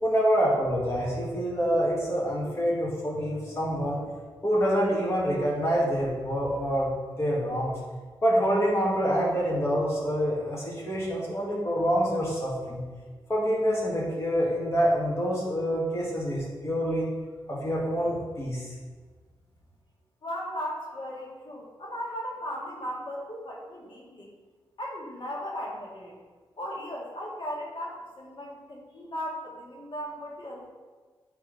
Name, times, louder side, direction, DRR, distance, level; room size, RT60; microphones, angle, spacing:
voice 1, 0.0-4.0 4.4-7.7 8.2-12.8 13.3-17.1 17.5-18.6, equal, 30° left, -5 dB, 1.9 m, -26 dB
voice 2, 20.2-24.3 24.8-26.2 26.6-30.7, equal, 55° left, -3 dB, 1.8 m, -37 dB
9.4 x 3.5 x 3.5 m, 1.4 s
cardioid pair, 55°, 10 cm